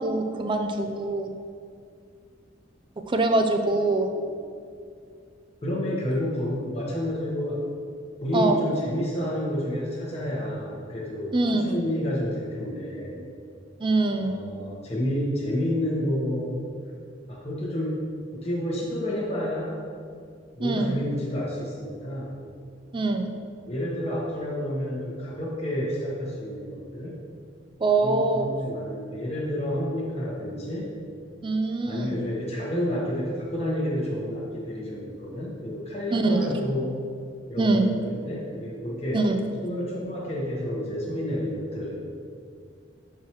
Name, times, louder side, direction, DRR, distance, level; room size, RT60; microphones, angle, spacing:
voice 1, 0.0-1.3 3.1-4.1 8.3-8.6 11.3-11.8 13.8-14.4 20.6-20.9 22.9-23.3 27.8-28.5 31.4-32.2 36.1-36.6 37.6-37.9 39.1-39.4, right 2 dB, 25° right, 5 dB, 0.4 m, -24 dB
voice 2, 5.6-7.6 8.2-13.2 14.2-16.7 17.3-18.0 18.3-19.8 20.5-22.4 23.6-27.2 28.0-30.9 31.8-37.0 37.5-39.2 39.6-42.0, equal, 35° left, -4 dB, 1.1 m, -30 dB
6.9 x 4.7 x 2.9 m, 2.3 s
head